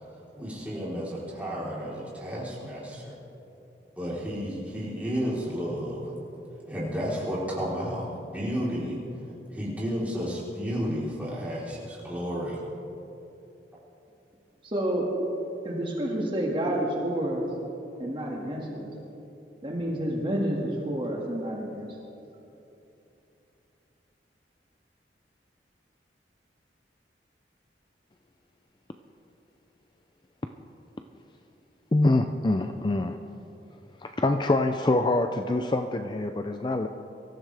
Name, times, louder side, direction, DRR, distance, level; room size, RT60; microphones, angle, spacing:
voice 1, 0.3-3.2 4.0-6.0 6.7-9.0 9.5-12.6, equal, 10° right, -7 dB, 3.7 m, -32 dB
voice 2, 14.6-15.1 15.6-17.4 18.0-18.9 19.6-22.0, right 1 dB, 30° right, -2 dB, 1.9 m, -29 dB
voice 3, 31.9-33.2 34.2-36.9, left 2 dB, 25° left, 7 dB, 0.4 m, -25 dB
23.5 x 14.5 x 3.4 m, 2.9 s
head